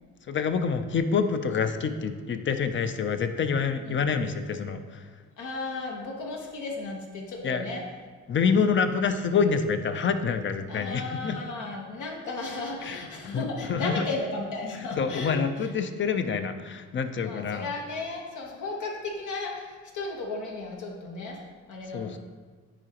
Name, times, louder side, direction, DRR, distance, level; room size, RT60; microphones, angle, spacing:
voice 1, 0.3-5.0 7.4-7.6 8.3-11.4 12.8-14.0 14.7-17.7 21.9-22.2, left 5 dB, 40° left, 9 dB, 0.5 m, -27 dB
voice 2, 5.4-7.8 10.7-15.4 17.2-21.4 21.7-22.2, left 3 dB, 80° left, 0 dB, 1.2 m, -34 dB
9.8 x 3.8 x 2.9 m, 1.5 s
cardioid pair, 90°, 30 cm